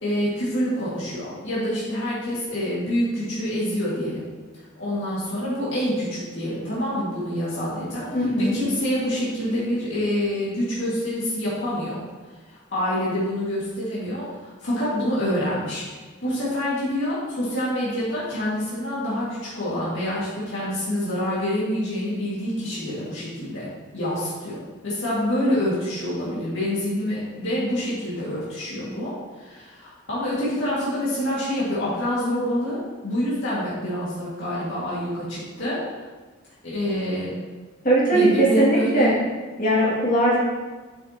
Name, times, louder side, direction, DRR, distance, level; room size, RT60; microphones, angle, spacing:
voice 1, 0.0-4.3 4.8-8.1 8.4-12.0 12.5-23.7 23.9-35.8 36.6-37.4 38.1-39.1, equal, 70° left, -9 dB, 2.0 m, -26 dB
voice 2, 8.1-8.6 37.8-39.1 39.6-40.4, right 1 dB, 40° left, -6 dB, 2.3 m, -19 dB
8.2 x 5.8 x 2.9 m, 1.3 s
head